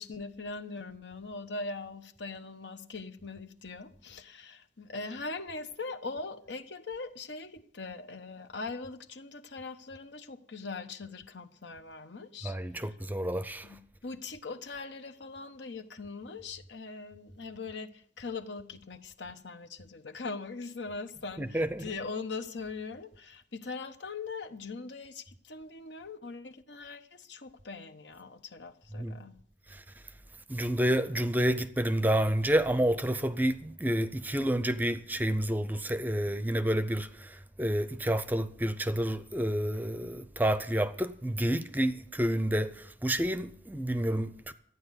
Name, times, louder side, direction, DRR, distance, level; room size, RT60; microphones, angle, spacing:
voice 1, 0.0-13.0 13.6-29.4, left 3 dB, 75° left, 1.1 m, -41 dB
voice 2, 12.4-13.7 21.4-22.0 28.9-29.2 29.7-29.8 30.5-44.5, right 1 dB, 10° right, 0.6 m, -29 dB
13.5 x 9.5 x 8.1 m
head